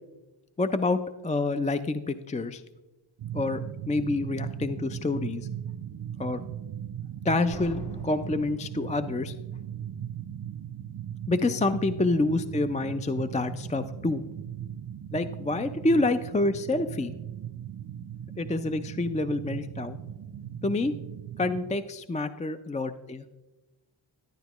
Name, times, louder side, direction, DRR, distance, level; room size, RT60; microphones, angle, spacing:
voice 1, 0.6-2.6 3.3-3.6 3.9-5.5 6.2-6.4 7.2-9.4 11.3-14.2 15.1-17.1 18.4-20.0 20.6-20.9 21.4-23.2, left 2 dB, 15° left, 10 dB, 0.3 m, -27 dB
sound 1, 3.2-21.8, right 9 dB, 50° right, 0.4 m, -38 dB
sound 2, 7.5-9.3, left 1 dB, 60° left, 2.2 m, -44 dB
11.5 x 10.0 x 3.0 m, 1.1 s
wide cardioid pair, 70°, 47 cm